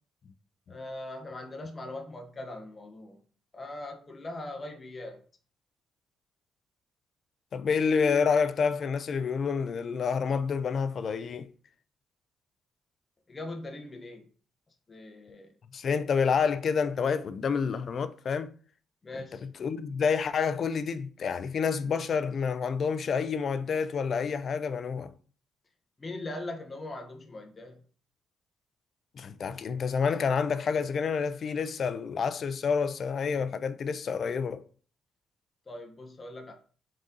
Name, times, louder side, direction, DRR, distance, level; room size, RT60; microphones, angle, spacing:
voice 1, 0.7-3.2 3.5-5.2 13.3-14.3 14.9-15.5 19.0-19.4 26.0-27.8 35.7-36.5, left 2 dB, 30° left, 0.7 m, -40 dB
voice 2, 7.5-11.5 15.7-18.5 19.1-25.1 29.2-34.6, left 6 dB, 55° left, 0.3 m, -28 dB
3.9 x 3.7 x 2.6 m
cardioid pair, 90°, 0 cm